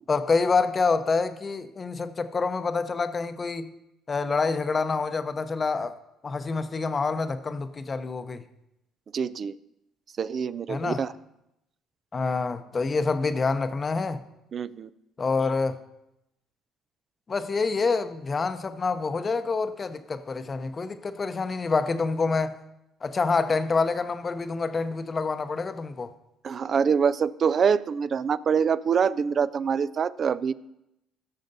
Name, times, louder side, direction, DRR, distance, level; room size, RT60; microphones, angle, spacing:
voice 1, 0.1-3.7 4.1-5.9 6.2-8.4 10.7-11.1 12.1-14.2 15.2-15.8 17.3-22.6 23.0-26.1, left 4 dB, 35° left, 0.7 m, -27 dB
voice 2, 9.1-9.6 10.2-11.1 14.5-14.9 26.4-30.5, right 6 dB, 50° right, 0.3 m, -25 dB
17.0 x 6.6 x 2.7 m
supercardioid pair, 65°, 0 cm